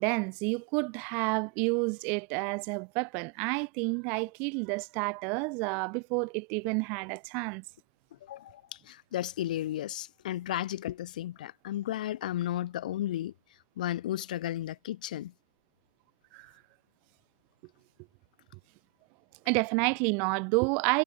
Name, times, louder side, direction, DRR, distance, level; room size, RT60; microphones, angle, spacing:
voice 1, 0.0-7.6 16.3-16.5 19.5-21.0, right 33 dB, 30° right, 7.6 m, -29 dB
voice 2, 8.2-13.3 13.8-15.3, left 13 dB, 45° left, 5.0 m, -34 dB
hypercardioid pair, 155°, 6 cm